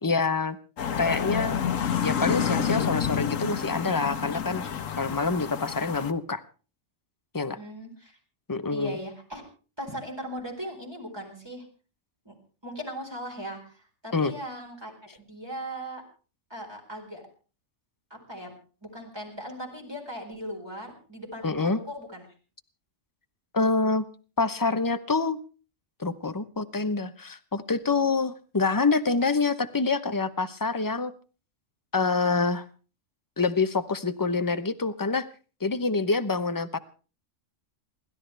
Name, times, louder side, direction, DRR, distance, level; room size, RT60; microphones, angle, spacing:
voice 1, 0.0-0.6 1.0-1.6 2.0-6.4 7.3-7.6 8.5-9.0 14.1-14.3 21.4-21.8 23.5-24.1 24.4-25.4 26.0-31.1 31.9-32.6 33.4-35.3 35.6-36.8, left 4 dB, 20° left, 11 dB, 0.7 m, -26 dB
sound 1, 0.8-6.1, left 8 dB, 75° left, 1.4 m, -29 dB
voice 2, 7.5-8.2 8.7-9.4 9.8-11.6 12.2-12.3 12.6-16.0 16.5-17.2 18.1-18.5 18.8-22.2, equal, 20° right, 0 dB, 4.5 m, -38 dB
28.5 x 12.5 x 3.4 m, 0.37 s
omnidirectional pair, 1.4 m